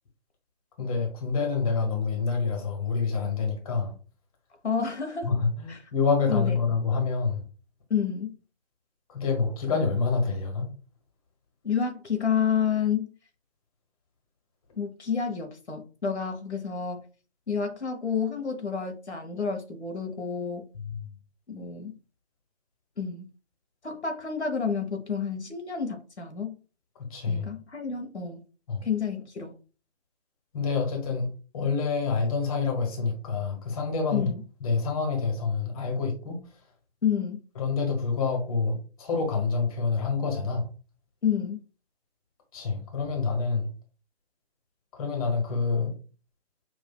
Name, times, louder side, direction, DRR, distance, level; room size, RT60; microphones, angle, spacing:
voice 1, 0.8-3.9 5.2-7.4 9.1-10.7 20.8-21.0 27.1-27.5 28.7-28.9 30.5-34.3 34.6-36.4 37.6-40.7 42.5-43.7 44.9-45.9, left 4 dB, 35° left, 1.3 m, -27 dB
voice 2, 4.6-5.3 5.7-5.8 6.3-6.6 7.9-8.4 11.6-13.1 14.7-17.1 17.5-20.6 21.5-22.0 23.0-23.3 23.8-26.6 27.3-28.4 28.8-29.6 34.1-34.3 37.0-37.4 41.2-41.6, left 7 dB, 80° left, 1.0 m, -29 dB
5.8 x 2.6 x 2.3 m
figure-of-eight pair, 140°, 33 cm